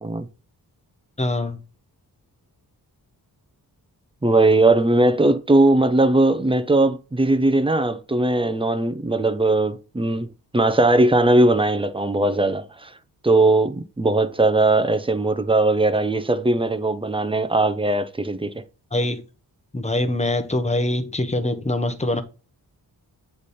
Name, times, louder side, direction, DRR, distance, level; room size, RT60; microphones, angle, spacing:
voice 1, 1.2-1.6 18.9-19.2 19.7-22.2, left 1 dB, 15° left, 1.0 m, -23 dB
voice 2, 4.2-10.3 10.5-12.9 13.2-18.6, right 2 dB, 15° right, 0.7 m, -19 dB
8.0 x 3.4 x 4.2 m
cardioid pair, 80°, 39 cm